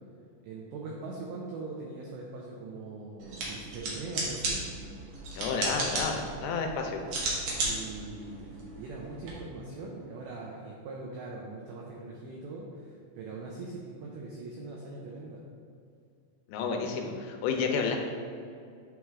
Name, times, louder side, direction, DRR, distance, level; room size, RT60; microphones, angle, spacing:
voice 1, 0.4-4.7 7.6-15.5, right 3 dB, 90° right, -2 dB, 2.1 m, -41 dB
sound 1, 3.2-9.3, right 2 dB, 70° right, 1.9 m, -35 dB
voice 2, 5.4-7.1 16.5-18.0, left 5 dB, 85° left, 3 dB, 2.9 m, -31 dB
8.8 x 3.1 x 3.6 m, 2.3 s
omnidirectional pair, 5.2 m